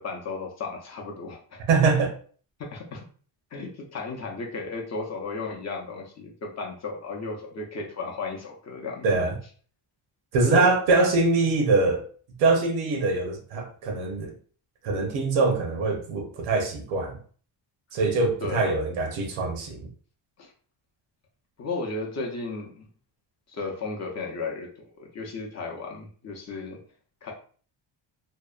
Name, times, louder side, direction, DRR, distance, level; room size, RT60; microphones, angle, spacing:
voice 1, 0.0-1.6 2.6-3.0 3.5-9.1 10.4-10.7 18.4-18.7 20.4-20.5 21.6-22.9 23.5-26.8 27.2-27.3, left 3 dB, 35° left, 0.5 m, -34 dB
voice 2, 1.7-2.2 9.0-9.4 10.3-12.0 12.4-14.3 14.8-17.2 17.9-19.9, right 3 dB, 90° right, 0.8 m, -23 dB
2.7 x 2.0 x 2.4 m
cardioid pair, 155°, 48 cm